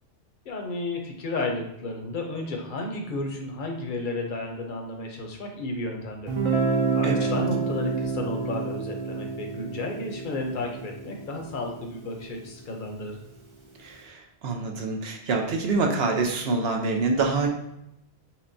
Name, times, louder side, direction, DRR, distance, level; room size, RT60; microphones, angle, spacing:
voice 1, 0.4-6.3 6.9-13.2, left 2 dB, 55° left, 1 dB, 0.8 m, -32 dB
Guitar, 6.3-12.0, right 4 dB, 40° right, 0.4 m, -28 dB
voice 2, 13.8-17.5, right 3 dB, 70° right, 3 dB, 0.8 m, -26 dB
5.6 x 2.2 x 2.6 m, 0.82 s
omnidirectional pair, 1.1 m